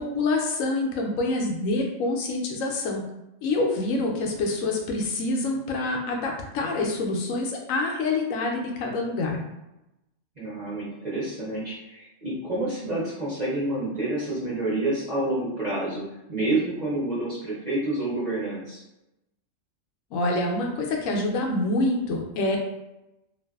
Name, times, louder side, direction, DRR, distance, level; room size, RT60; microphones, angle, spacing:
voice 1, 0.0-3.0 3.4-9.4 20.1-22.6, left 2 dB, 85° left, 0 dB, 1.0 m, -26 dB
voice 2, 10.4-16.0 16.3-18.8, right 2 dB, 40° right, -8 dB, 0.8 m, -28 dB
2.6 x 2.4 x 2.3 m, 0.92 s
omnidirectional pair, 1.3 m